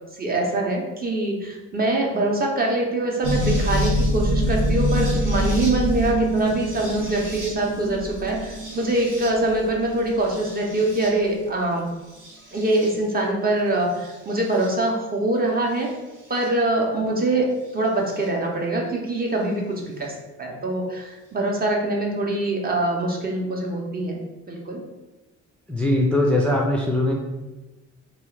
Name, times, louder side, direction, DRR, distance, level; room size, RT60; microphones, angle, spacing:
voice 1, 0.1-11.9 12.5-16.0 16.3-24.2 24.5-24.8, right 2 dB, 30° right, -1 dB, 0.7 m, -24 dB
sound 1, 3.2-11.4 12.1-12.9 14.0-14.7 16.4-16.5 18.2-18.3, right 1 dB, 85° right, 0.9 m, -26 dB
voice 2, 25.7-27.1, left 1 dB, 5° left, -2 dB, 0.3 m, -20 dB
2.9 x 2.3 x 3.2 m, 1.1 s
cardioid pair, 90°, 30 cm